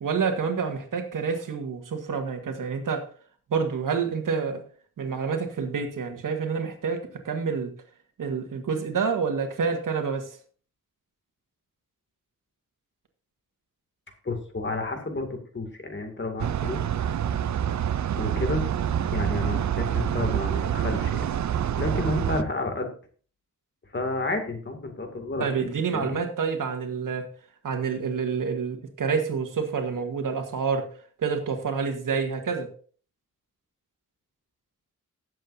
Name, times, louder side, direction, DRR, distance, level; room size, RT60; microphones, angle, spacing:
voice 1, 0.0-3.1 3.5-4.6 5.0-7.7 8.2-10.4 25.4-27.3 27.6-30.9 31.2-32.7, right 5 dB, 90° right, 6 dB, 1.7 m, -28 dB
voice 2, 14.2-16.8 18.2-18.7 19.1-21.3 21.8-22.9 23.9-26.2, left 2 dB, 35° left, 4 dB, 2.3 m, -31 dB
sound 1, 16.4-22.4, right 9 dB, 65° right, 0.5 m, -27 dB
19.0 x 7.6 x 2.7 m, 0.43 s
wide cardioid pair, 115°, 31 cm